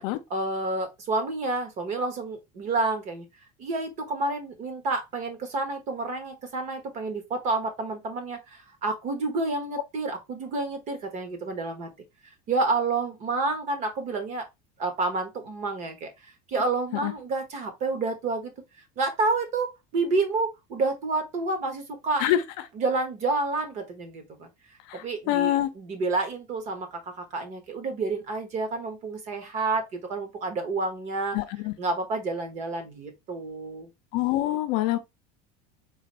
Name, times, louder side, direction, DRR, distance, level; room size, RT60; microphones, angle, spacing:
voice 1, 0.3-3.2 3.6-11.9 12.5-14.5 14.8-18.5 19.0-22.3 22.7-24.5 24.9-31.4 31.8-33.9, right 3 dB, 40° right, 1.1 m, -29 dB
voice 2, 24.9-25.7 31.3-31.7 34.1-35.0, left 13 dB, 60° left, 0.6 m, -25 dB
4.0 x 2.5 x 3.0 m
cardioid pair, 160°, 18 cm